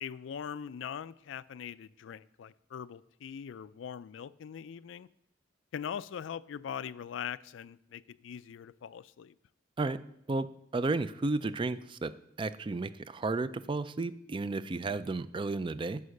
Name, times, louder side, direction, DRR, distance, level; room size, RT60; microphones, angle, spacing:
voice 1, 0.0-5.1 5.7-9.3, left 8 dB, 80° left, 17 dB, 0.3 m, -41 dB
voice 2, 10.3-12.1 12.4-16.0, right 3 dB, 25° right, 14 dB, 0.4 m, -33 dB
9.6 x 5.7 x 6.4 m, 0.76 s
head